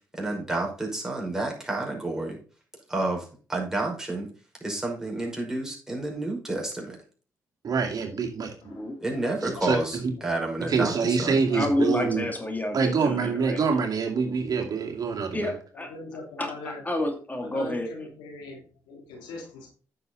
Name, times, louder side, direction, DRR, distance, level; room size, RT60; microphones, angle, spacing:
voice 1, 0.1-2.4 2.9-4.3 4.6-7.0 9.0-11.4, right 2 dB, 5° right, -1 dB, 5.4 m, -30 dB
voice 2, 7.6-8.6 9.4-10.1 10.7-12.3 12.7-15.5, right 5 dB, 55° right, 2 dB, 2.4 m, -26 dB
voice 3, 9.2-9.6 10.2-10.3 11.0-11.6 13.1-13.3 15.7-16.8 17.4-19.7, left 3 dB, 90° left, 1 dB, 3.1 m, -42 dB
voice 4, 11.5-13.6 15.3-15.9 16.4-17.9, left 1 dB, 20° left, 5 dB, 2.6 m, -29 dB
9.5 x 6.9 x 3.9 m, 0.38 s
supercardioid pair, 55°, 8 cm